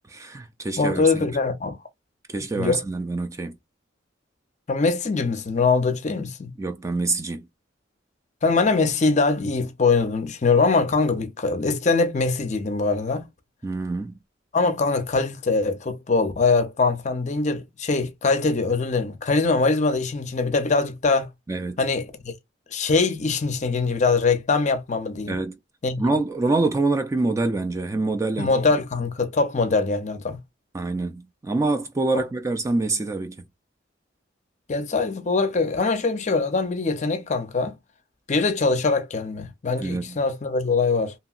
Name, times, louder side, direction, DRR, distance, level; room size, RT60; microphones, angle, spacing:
voice 1, 0.1-1.3 2.3-3.6 6.6-7.5 13.6-14.1 21.5-21.8 25.3-25.6 26.0-28.5 30.7-33.4 39.8-40.2, right 2 dB, 15° right, 0.3 m, -26 dB
voice 2, 0.8-1.8 2.6-2.8 4.7-6.5 8.4-13.3 14.5-21.3 21.8-22.3 22.7-25.4 25.8-26.0 28.4-30.4 34.7-37.7 38.3-41.1, left 4 dB, 40° left, 0.5 m, -22 dB
2.8 x 2.8 x 2.4 m
head